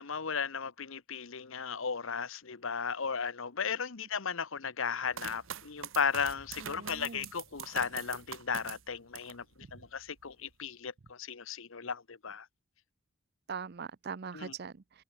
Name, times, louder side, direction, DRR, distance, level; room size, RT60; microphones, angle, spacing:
voice 1, 0.0-9.4 9.7-12.5 14.3-14.5, left 6 dB, 65° left, 1.0 m, -35 dB
sound 1, 5.1-9.4 9.9-10.5, right 8 dB, 65° right, 1.1 m, -44 dB
sound 2, 6.1-9.3 9.6-9.9, equal, 15° left, 3.6 m, -60 dB
voice 2, 6.7-7.2 13.5-15.0, right 6 dB, 45° right, 0.5 m, -41 dB
head